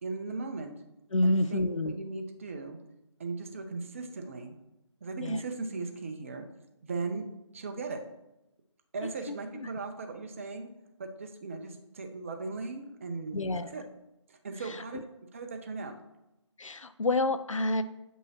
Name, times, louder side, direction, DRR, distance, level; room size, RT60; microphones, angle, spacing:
voice 1, 0.0-0.7 1.2-2.8 3.2-4.5 5.0-6.5 6.8-7.3 7.5-8.0 8.9-10.7 11.0-13.8 14.3-15.9, right 3 dB, 25° right, 6 dB, 0.5 m, -38 dB
voice 2, 1.1-1.9 5.2-5.4 9.3-9.7 13.3-13.7 16.6-17.8, left 2 dB, 85° left, 12 dB, 0.5 m, -28 dB
7.4 x 5.4 x 2.9 m, 0.91 s
figure-of-eight pair, 150°, 16 cm